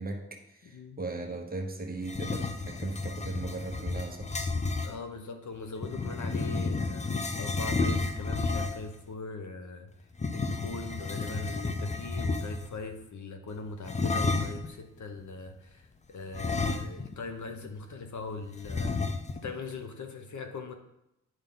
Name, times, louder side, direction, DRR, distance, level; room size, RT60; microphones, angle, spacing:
voice 1, 0.0-4.3, right 2 dB, 30° right, 3 dB, 1.2 m, -38 dB
voice 2, 0.6-1.0 4.8-7.1 7.4-9.9 10.3-19.0 19.3-20.8, left 3 dB, 70° left, 6 dB, 1.0 m, -41 dB
sound 1, 2.0-5.0 5.8-9.0 10.1-12.8 13.9-14.7 16.3-17.3 17.6-17.7 18.6-19.5, left 3 dB, 25° left, 0.5 m, -31 dB
9.8 x 5.0 x 3.9 m, 0.85 s
wide cardioid pair, 100°, 30 cm